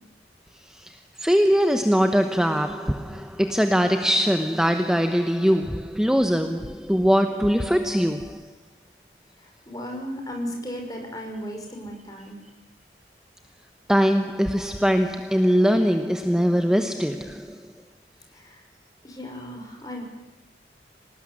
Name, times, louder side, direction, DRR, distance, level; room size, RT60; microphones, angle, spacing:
voice 1, 0.6-8.5 13.9-17.7, equal, 5° right, 1.0 m, -22 dB
voice 2, 9.4-12.4 18.3-18.6 19.0-20.1, equal, 20° left, 5.9 m, -35 dB
25.5 x 19.0 x 9.8 m
head